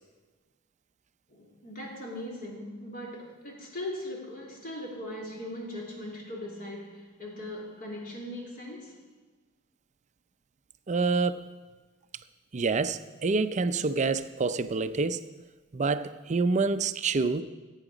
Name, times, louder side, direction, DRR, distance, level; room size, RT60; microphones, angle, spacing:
voice 1, 1.3-9.0, left 1 dB, 40° left, 3.0 m, -39 dB
voice 2, 10.9-11.5 12.5-15.2 15.7-17.4, right 4 dB, 35° right, 0.5 m, -27 dB
15.5 x 9.1 x 5.0 m
head